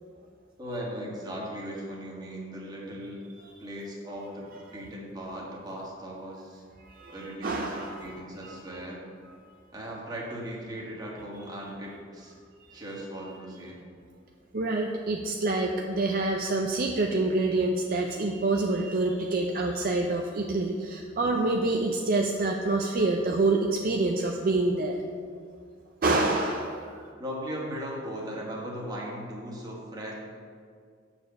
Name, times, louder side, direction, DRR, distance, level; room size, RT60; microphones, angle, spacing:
voice 1, 0.6-3.2 3.6-6.6 7.1-9.0 9.7-12.3 12.7-13.8 15.8-16.0 27.2-30.1, equal, 20° right, -4 dB, 1.6 m, -38 dB
voice 2, 7.4-8.0 14.5-25.0 26.0-26.7, right 2 dB, 50° right, 1 dB, 0.5 m, -26 dB
7.0 x 4.4 x 6.7 m, 2.1 s
head